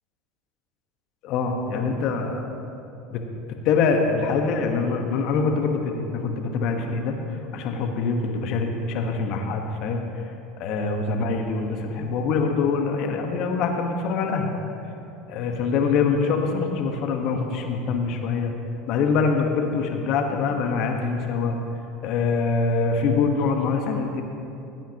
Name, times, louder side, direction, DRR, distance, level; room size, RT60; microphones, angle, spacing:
voice 1, 1.2-2.5 3.1-3.2 3.6-7.2 7.5-10.0 10.6-14.5 15.3-18.5 18.9-21.6 22.0-24.2, left 4 dB, 60° left, 3 dB, 1.2 m, -24 dB
16.5 x 9.0 x 2.9 m, 2.8 s
hypercardioid pair, 85°, 0 cm